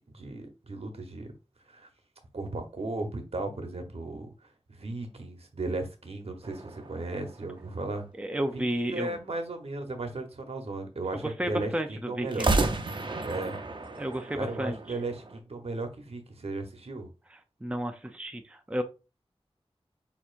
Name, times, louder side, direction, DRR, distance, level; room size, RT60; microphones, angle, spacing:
voice 1, 0.1-1.3 1.7-1.9 2.3-8.1 8.5-12.5 13.2-13.6 14.3-17.1, right 2 dB, 70° right, 5 dB, 0.9 m, -36 dB
sound 1, 6.4-8.2 12.3-15.4, right 2 dB, 50° right, 0.6 m, -32 dB
voice 2, 8.2-9.1 11.2-12.6 14.0-15.0 17.3-18.8, right 1 dB, 10° right, 6 dB, 0.5 m, -32 dB
6.5 x 2.9 x 2.5 m, 0.30 s
wide cardioid pair, 80°, 11 cm